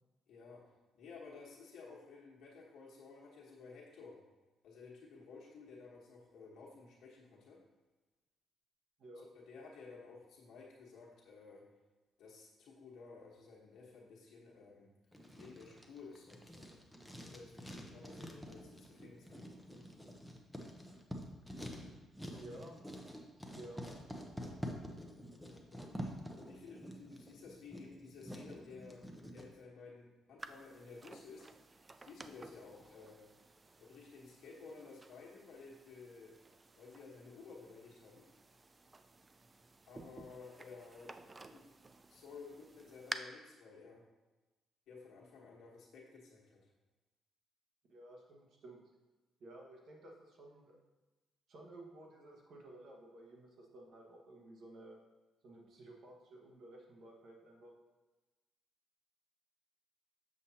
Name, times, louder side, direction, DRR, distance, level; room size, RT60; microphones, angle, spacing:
voice 1, 0.3-0.6 0.9-4.2 4.6-7.6 9.3-11.6 12.2-14.9 15.3-16.8 17.2-19.9 25.3-26.1 26.4-29.0 29.3-31.5 32.0-33.3 33.8-36.4 36.8-38.3 39.9-41.6 42.1-44.0 44.9-46.7, left 4 dB, 75° left, -4 dB, 1.2 m, -54 dB
Writing, 15.1-29.5, equal, 5° right, 0.9 m, -48 dB
voice 2, 22.3-22.8 23.5-23.9 47.9-48.8 49.4-50.8 51.5-55.0 55.4-57.7, right 1 dB, 65° right, 0 dB, 1.4 m, -54 dB
sound 1, 30.4-43.2, right 3 dB, 25° right, 0.4 m, -53 dB
7.1 x 6.5 x 2.8 m, 1.2 s
cardioid pair, 90°, 0 cm